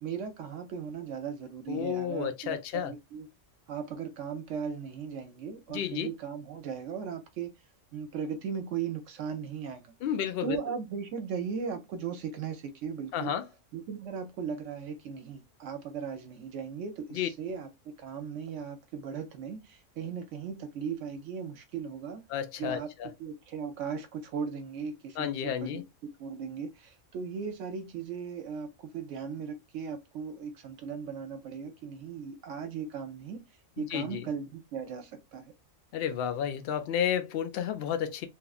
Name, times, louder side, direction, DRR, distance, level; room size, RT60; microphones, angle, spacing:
voice 1, 0.0-3.3 3.7-7.5 7.9-9.9 10.4-13.3 13.7-22.2 22.6-22.9 23.2-25.8 26.2-33.4 33.8-35.5, right 6 dB, 75° right, 0.9 m, -37 dB
voice 2, 1.7-2.9 5.7-6.1 10.0-10.6 13.1-13.4 17.1-17.3 22.3-23.1 25.2-25.8 33.8-34.3 35.9-38.3, left 9 dB, 65° left, 0.6 m, -31 dB
2.9 x 2.4 x 2.3 m
omnidirectional pair, 1.3 m